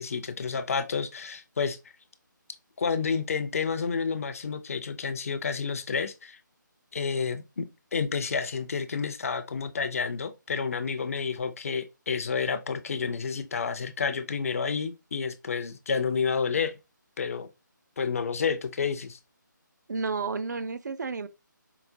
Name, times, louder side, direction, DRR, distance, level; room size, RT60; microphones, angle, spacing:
voice 1, 0.0-1.8 2.8-6.4 6.9-7.7 7.9-16.7 17.2-17.5 18.0-19.2, left 5 dB, 45° left, 0.5 m, -30 dB
voice 2, 19.9-21.3, right 4 dB, 60° right, 0.4 m, -31 dB
4.6 x 2.1 x 2.6 m
figure-of-eight pair, 150°, 11 cm